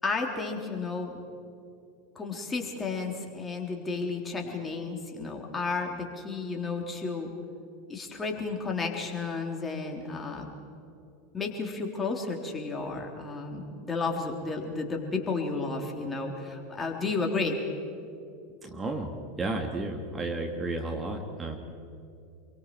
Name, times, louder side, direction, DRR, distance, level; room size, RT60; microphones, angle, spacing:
voice 1, 0.0-1.2 2.2-7.3 7.9-10.5 11.3-17.6, left 4 dB, 20° left, 1 dB, 3.6 m, -32 dB
voice 2, 18.6-21.6, right 2 dB, 20° right, 3 dB, 2.1 m, -33 dB
27.5 x 23.5 x 4.7 m, 2.5 s
figure-of-eight pair, 85°, 0 cm